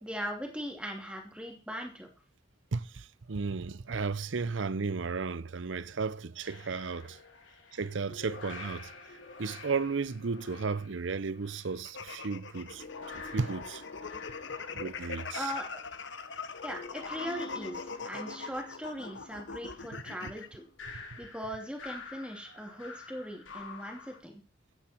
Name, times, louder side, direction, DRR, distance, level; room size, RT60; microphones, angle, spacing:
voice 1, 0.0-2.1 15.4-15.8 16.6-20.6 20.9-24.4, equal, 5° right, 2.8 m, -39 dB
voice 2, 2.7-7.2 7.7-13.8 14.7-15.5 20.9-21.2, right 4 dB, 80° right, 0.6 m, -34 dB
sound 1, 6.4-11.8 12.5-24.2, left 4 dB, 90° left, 2.9 m, -48 dB
sound 2, 11.8-20.5, left 5 dB, 70° left, 1.2 m, -42 dB
15.0 x 9.8 x 4.5 m
head